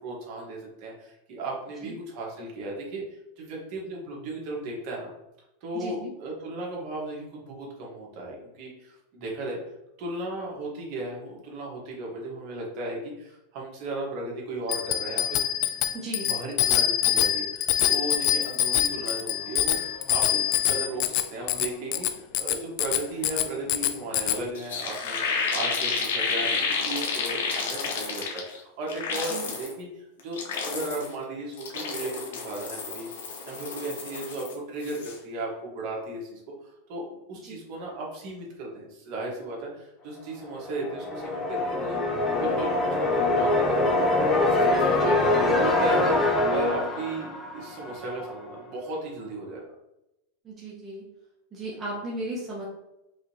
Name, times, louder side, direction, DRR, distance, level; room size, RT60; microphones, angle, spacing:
voice 1, 0.0-5.1 5.6-9.6 10.0-15.4 16.2-33.1 33.4-36.4 36.9-42.0 42.4-46.1 46.5-49.6, right 2 dB, 50° right, -2 dB, 1.4 m, -35 dB
voice 2, 5.7-6.1 15.9-16.3 29.2-29.5 37.4-37.6 45.0-45.2 50.4-51.0 51.5-52.7, right 1 dB, 20° right, -5 dB, 0.9 m, -36 dB
Bicycle bell, 14.7-24.4, left 12 dB, 50° left, 0.3 m, -25 dB
sound 1, 24.3-24.4 24.5-28.6 28.9-29.7 30.2-31.1 31.5-34.5 34.8-35.2, left 4 dB, 90° left, 0.9 m, -30 dB
sound 2, 40.6-48.3, left 2 dB, 20° left, 0.8 m, -24 dB
4.8 x 2.9 x 2.8 m, 0.89 s
supercardioid pair, 140°, 0 cm